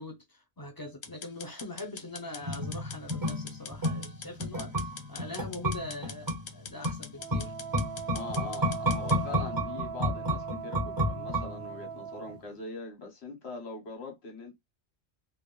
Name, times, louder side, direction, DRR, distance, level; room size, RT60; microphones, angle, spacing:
voice 1, 0.0-7.5, left 2 dB, 30° left, 0.4 m, -42 dB
sound 1, 1.0-9.2, left 6 dB, 60° left, 0.8 m, -45 dB
sound 2, 2.4-12.0 12.3-12.4, equal, 25° right, 0.5 m, -32 dB
Wind instrument woodwind instrument, 7.2-12.4, right 7 dB, 60° right, 0.8 m, -40 dB
voice 2, 8.1-14.5, left 3 dB, 75° left, 1.3 m, -42 dB
3.4 x 2.1 x 2.3 m
omnidirectional pair, 1.1 m